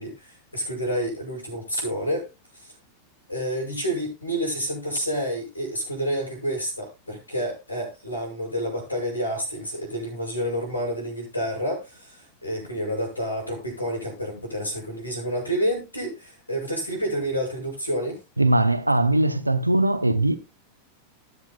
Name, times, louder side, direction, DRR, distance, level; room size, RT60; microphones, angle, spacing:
voice 1, 0.0-2.7 3.3-18.2, equal, 80° left, 7.1 m, -29 dB
voice 2, 18.4-20.4, right 2 dB, 85° right, 0.9 m, -20 dB
20.0 x 7.7 x 2.4 m
figure-of-eight pair, 90°, 0 cm